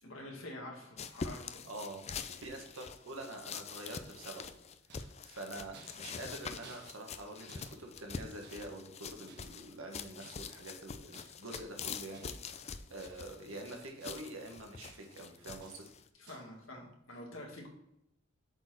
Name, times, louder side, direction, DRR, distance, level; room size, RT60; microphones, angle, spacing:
voice 1, 0.0-1.7 16.1-17.7, left 1 dB, 75° left, -1 dB, 2.0 m, -47 dB
sound 1, 1.0-16.1, left 6 dB, 30° left, 0.4 m, -45 dB
voice 2, 1.6-4.5 4.9-15.9, right 2 dB, 85° right, 2 dB, 1.6 m, -46 dB
sound 2, 4.0-4.5 4.9-7.2 7.5-8.9 9.3-9.8 10.2-10.7 11.1-11.6 12.1-12.6 13.0-13.5 13.7-14.4 14.8-15.3 15.6-16.0 16.3-16.6, right 4 dB, 60° right, 1.2 m, -59 dB
7.8 x 4.3 x 4.4 m, 0.80 s
head